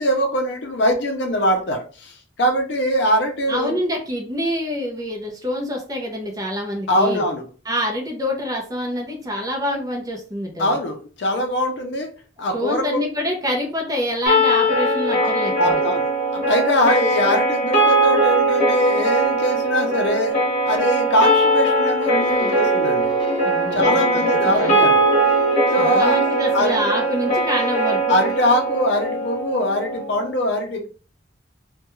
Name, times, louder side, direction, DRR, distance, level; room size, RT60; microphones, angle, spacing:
voice 1, 0.0-3.7 6.9-7.4 10.6-12.1 12.4-13.0 15.2-15.3 15.6-20.3 20.6-23.1 23.7-25.1 25.7-26.8 28.1-30.9, equal, 75° left, 3 dB, 0.5 m, -22 dB
voice 2, 3.5-7.2 7.7-10.7 12.5-15.8 23.4-24.7 25.8-28.2, equal, 20° right, 0 dB, 0.5 m, -26 dB
sound 1, 14.3-30.3, right 1 dB, 40° left, 1.0 m, -20 dB
sound 2, 22.1-29.4, left 2 dB, 25° left, 0.8 m, -32 dB
2.3 x 2.2 x 2.9 m, 0.38 s
head